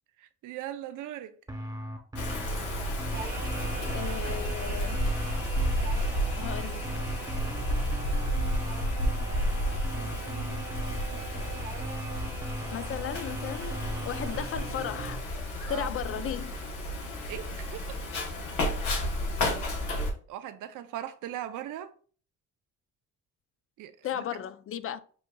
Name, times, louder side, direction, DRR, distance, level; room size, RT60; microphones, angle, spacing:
voice 1, 0.2-1.3 9.9-10.7 15.7-15.9 17.3-17.9 20.3-21.9 23.8-24.2, right 11 dB, 80° right, 0.5 m, -40 dB
sound 1, 1.5-15.2, equal, 10° right, 0.9 m, -39 dB
Wind, 2.1-20.1, equal, 90° left, 1.1 m, -32 dB
Singing, 3.1-15.2, right 6 dB, 35° right, 0.6 m, -44 dB
voice 2, 3.9-5.0 6.3-6.9 12.7-15.2 15.7-16.6 24.0-25.0, left 9 dB, 45° left, 0.4 m, -35 dB
6.8 x 2.5 x 2.2 m
cardioid pair, 90°, 30 cm